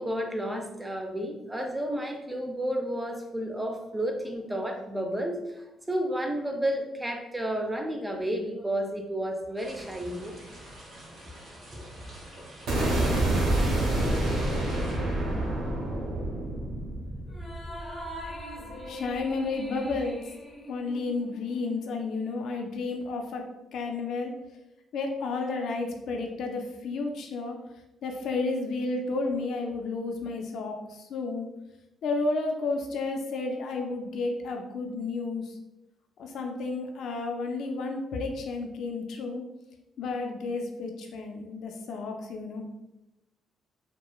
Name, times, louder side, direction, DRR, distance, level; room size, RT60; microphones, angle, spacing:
voice 1, 0.0-10.3 11.7-11.8, right 1 dB, 10° right, 3 dB, 0.4 m, -31 dB
sound 1, 9.6-15.0, right 1 dB, 55° right, 0.9 m, -47 dB
sound 2, 12.7-18.7, right 1 dB, 80° right, 0.7 m, -27 dB
sound 3, 17.3-22.0, equal, 25° left, 0.6 m, -42 dB
voice 2, 18.9-20.2 20.7-23.5 23.7-24.3 24.9-27.6 28.0-31.5 32.0-35.6 36.2-39.4 40.0-42.6, left 3 dB, 70° left, 3 dB, 0.3 m, -32 dB
2.9 x 2.1 x 2.3 m, 0.93 s
cardioid pair, 90°, 0 cm